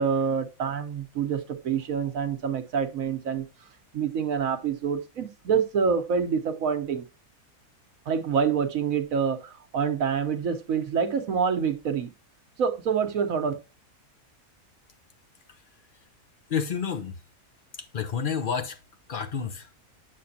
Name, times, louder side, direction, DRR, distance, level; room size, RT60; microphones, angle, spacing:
voice 1, 0.0-3.5 3.9-7.0 8.1-12.1 12.6-13.5, right 6 dB, 75° right, 1.4 m, -26 dB
voice 2, 16.5-17.2 17.8-18.8 19.1-19.7, left 7 dB, 45° left, 0.9 m, -30 dB
8.8 x 6.0 x 2.7 m
omnidirectional pair, 1.4 m